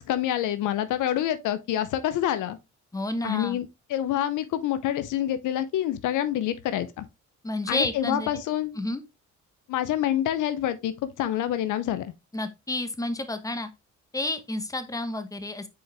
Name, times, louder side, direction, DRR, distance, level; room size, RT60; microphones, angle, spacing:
voice 1, 0.0-2.6 3.2-7.1 7.7-8.8 9.7-12.1, left 11 dB, 80° left, 0.7 m, -27 dB
voice 2, 2.9-3.6 7.4-8.3 8.8-9.0 12.3-13.7 14.1-15.7, left 2 dB, 10° left, 1.1 m, -30 dB
6.3 x 4.6 x 3.3 m
cardioid pair, 90°, 30 cm